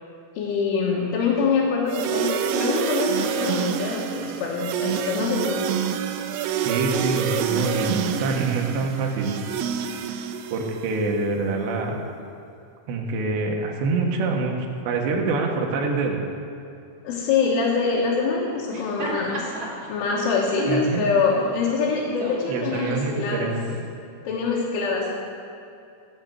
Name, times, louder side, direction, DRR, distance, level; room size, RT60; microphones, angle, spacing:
voice 1, 0.4-5.6 17.0-19.5 19.9-23.5 24.3-25.2, left 5 dB, 85° left, -5 dB, 3.9 m, -24 dB
sound 1, 1.9-11.0, right 8 dB, 90° right, 2.3 m, -27 dB
voice 2, 6.6-9.4 10.5-12.0 12.9-14.5 14.8-16.2 20.7-21.0 22.5-23.8, right 3 dB, 75° right, 1 dB, 3.3 m, -25 dB
Laughter, 18.5-23.8, right 1 dB, 30° right, 1.9 m, -32 dB
16.0 x 6.7 x 7.7 m, 2.6 s
omnidirectional pair, 5.5 m